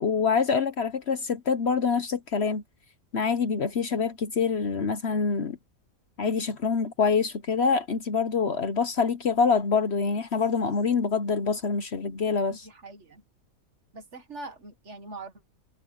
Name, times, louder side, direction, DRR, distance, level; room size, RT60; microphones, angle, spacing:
voice 1, 0.0-2.6 3.1-5.6 6.2-12.6, left 5 dB, 55° left, 1.2 m, -25 dB
voice 2, 12.5-13.2 13.9-15.5, right 2 dB, 55° right, 2.1 m, -43 dB
omnidirectional pair, 1.4 m